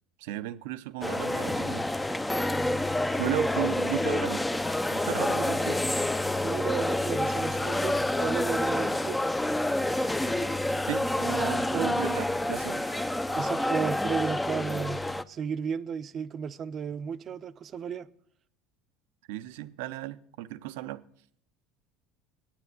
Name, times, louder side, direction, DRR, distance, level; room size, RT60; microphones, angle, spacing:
voice 1, 0.2-1.9 3.2-4.5 4.9-5.8 10.0-10.1 10.9-13.1 19.3-21.0, right 15 dB, 80° right, 0.6 m, -35 dB
sound 1, 1.0-15.2, left 1 dB, 10° left, 0.5 m, -28 dB
voice 2, 6.4-9.2 11.7-12.0 13.3-15.0 15.3-18.1, right 7 dB, 40° right, 0.6 m, -33 dB
9.1 x 8.8 x 9.2 m
supercardioid pair, 95°, 0 cm